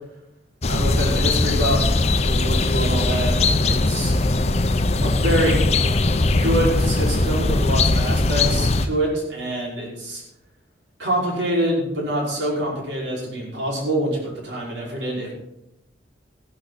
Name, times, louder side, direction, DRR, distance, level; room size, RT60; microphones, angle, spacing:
sound 1, 0.6-8.9, left 2 dB, 35° left, 0.7 m, -20 dB
voice 1, 0.7-1.9 2.2-4.1 5.0-5.6 6.4-10.2 11.0-15.3, right 1 dB, 85° right, -3 dB, 5.6 m, -25 dB
15.0 x 12.0 x 4.2 m, 0.87 s
head